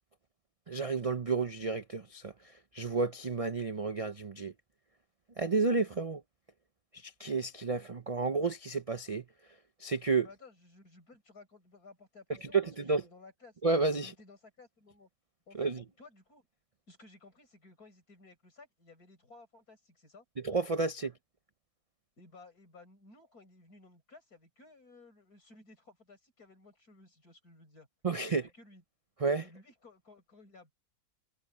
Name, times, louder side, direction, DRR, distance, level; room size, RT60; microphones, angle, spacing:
voice 1, 0.7-4.5 5.4-6.2 6.9-9.2 9.8-10.3 12.5-13.0 13.6-14.1 15.5-15.8 20.4-21.1 28.0-28.4 29.2-29.4, right 4 dB, 70° right, 0.3 m, -31 dB
voice 2, 10.2-13.6 14.0-15.1 15.5-15.7 16.0-16.5 16.9-20.3 22.2-27.9 28.3-28.8 29.4-30.7, left 3 dB, 70° left, 7.1 m, -57 dB
omnidirectional pair, 1.6 m